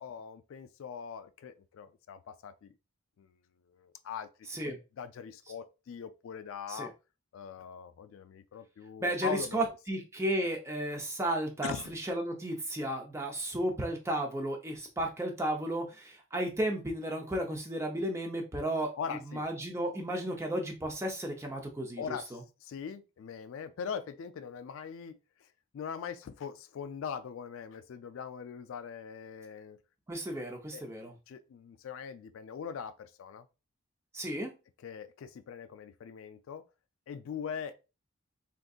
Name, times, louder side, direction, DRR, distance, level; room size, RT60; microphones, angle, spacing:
voice 1, 0.0-2.7 3.2-3.3 3.7-4.3 4.6-6.9 7.3-9.7 11.6-11.9 19.0-19.5 22.0-25.2 25.7-29.8 30.7-30.8 31.3-33.5 34.8-36.6 37.1-37.8, left 7 dB, 65° left, 0.3 m, -41 dB
voice 2, 9.0-18.9 19.3-22.2 30.1-31.1 34.1-34.5, right 1 dB, 15° right, 0.5 m, -33 dB
3.7 x 2.6 x 2.3 m
head